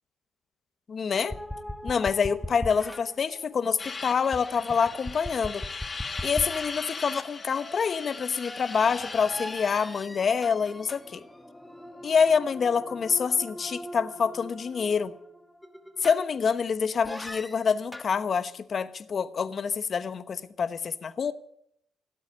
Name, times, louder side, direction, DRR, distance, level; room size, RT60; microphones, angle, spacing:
voice 1, 0.9-1.4 1.8-5.6 6.2-11.2 12.0-15.1 16.0-21.3, left 6 dB, 45° left, 1.0 m, -26 dB
sound 1, 1.1-3.9 4.3-16.6 17.0-18.1, left 1 dB, 5° left, 1.3 m, -41 dB
sound 2, 3.8-10.0, left 4 dB, 30° left, 1.5 m, -39 dB
17.0 x 8.1 x 8.5 m
cardioid pair, 90°, 0 cm